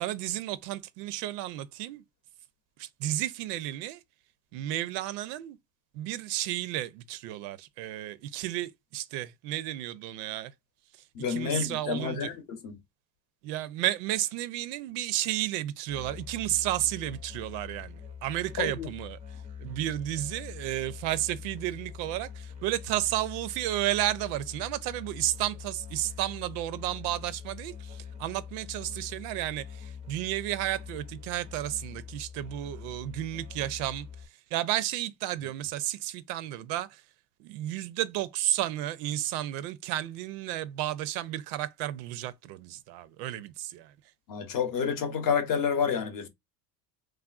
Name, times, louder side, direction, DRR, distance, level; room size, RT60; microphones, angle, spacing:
voice 1, 0.0-2.0 2.8-4.0 4.5-5.6 5.9-10.5 10.9-12.3 13.4-19.2 19.6-37.0 37.4-43.9, right 14 dB, 80° right, 0.5 m, -32 dB
voice 2, 11.1-12.8 18.6-18.9 44.3-46.3, left 6 dB, 45° left, 0.7 m, -29 dB
Musical instrument, 15.9-34.2, left 7 dB, 15° right, 0.4 m, -44 dB
3.2 x 2.4 x 2.3 m
cardioid pair, 150°, 48 cm